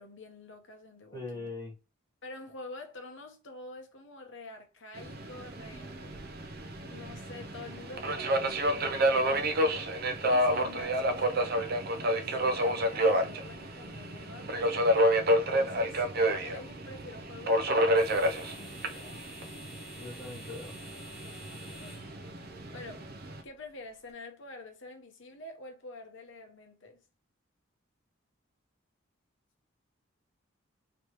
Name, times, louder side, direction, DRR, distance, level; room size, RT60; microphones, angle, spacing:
voice 1, 0.0-1.5 2.2-6.1 6.9-9.6 10.3-14.8 15.5-19.2 21.7-22.1 22.7-23.1 23.4-27.0, left 2 dB, 60° left, 0.9 m, -47 dB
voice 2, 1.1-1.7 20.0-20.8, left 3 dB, 20° left, 1.7 m, -41 dB
Subway metro underground, 5.0-23.4, equal, 45° right, 0.5 m, -29 dB
sound 1, 12.9-24.1, equal, ahead, 1.6 m, -53 dB
3.3 x 3.0 x 3.0 m
head